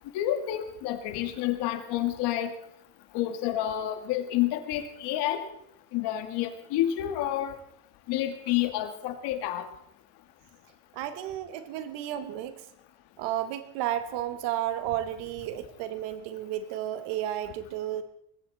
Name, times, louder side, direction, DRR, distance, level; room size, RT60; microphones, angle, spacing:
voice 1, 0.1-2.5 3.1-5.4 5.9-7.6 8.1-9.7, left 12 dB, 75° left, 7 dB, 2.2 m, -29 dB
voice 2, 10.9-12.6 13.2-18.0, right 12 dB, 90° right, 10 dB, 1.7 m, -32 dB
20.5 x 16.0 x 4.2 m, 0.73 s
cardioid pair, 175°, 41 cm